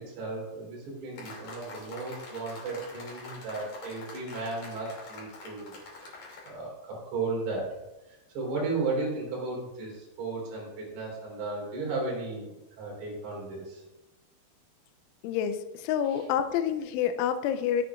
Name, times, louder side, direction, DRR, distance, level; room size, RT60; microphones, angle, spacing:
voice 1, 0.0-7.8 8.3-13.8, right 3 dB, 75° right, -3 dB, 6.8 m, -35 dB
sound 1, 1.2-6.5, left 3 dB, 45° left, 3.7 m, -45 dB
voice 2, 15.2-17.8, left 9 dB, 85° left, 9 dB, 3.0 m, -28 dB
24.5 x 8.3 x 2.5 m, 1.0 s
omnidirectional pair, 5.8 m